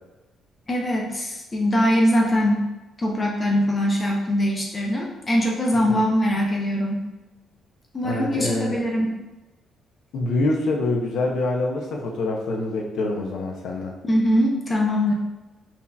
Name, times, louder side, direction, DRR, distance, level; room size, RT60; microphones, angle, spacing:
voice 1, 0.7-2.7 3.0-7.1 7.9-9.1 14.0-15.1, equal, 30° left, -1 dB, 0.6 m, -22 dB
voice 2, 5.7-6.0 8.0-8.9 10.1-13.9, left 2 dB, 75° left, 1 dB, 0.6 m, -26 dB
3.8 x 2.8 x 2.2 m, 1.1 s
cardioid pair, 90°, 0 cm